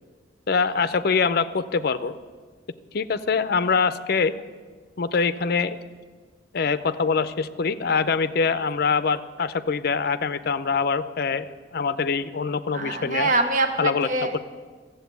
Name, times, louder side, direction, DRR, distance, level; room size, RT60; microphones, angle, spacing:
voice 1, 0.5-2.1 2.9-4.3 5.0-5.8 6.5-13.3 13.8-14.1, left 5 dB, 55° left, 13 dB, 0.5 m, -24 dB
voice 2, 12.7-14.4, right 2 dB, 45° right, 6 dB, 0.9 m, -24 dB
13.5 x 7.8 x 8.1 m, 1.5 s
head